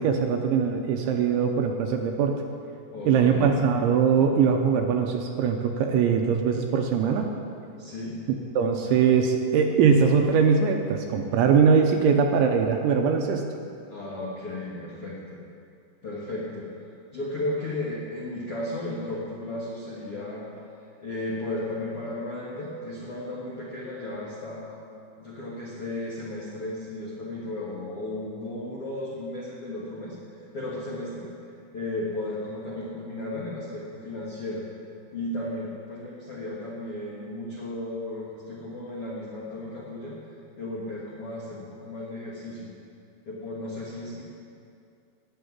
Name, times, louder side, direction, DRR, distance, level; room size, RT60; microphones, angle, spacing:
voice 1, 0.0-2.4 3.1-7.3 8.6-13.5, right 6 dB, 80° right, 4 dB, 2.8 m, -22 dB
voice 2, 2.9-3.6 7.8-8.1 13.9-15.4 16.0-16.7 17.1-20.4 21.0-24.8 25.2-31.3 31.7-34.6 35.1-40.1 40.6-42.7 43.2-44.2, left 1 dB, 80° left, -6 dB, 1.3 m, -34 dB
11.5 x 7.9 x 9.6 m, 2.5 s
omnidirectional pair, 5.9 m